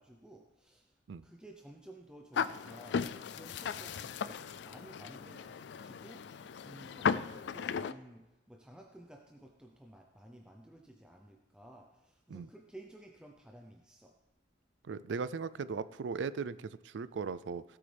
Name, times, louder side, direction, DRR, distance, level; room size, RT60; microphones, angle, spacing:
voice 1, 0.0-14.1, right 1 dB, 5° right, 1 dB, 0.7 m, -54 dB
sound 1, 2.3-7.9, left 6 dB, 70° left, 0.4 m, -36 dB
voice 2, 14.9-17.6, right 5 dB, 90° right, 16 dB, 0.4 m, -38 dB
17.0 x 8.0 x 3.4 m, 1.0 s
head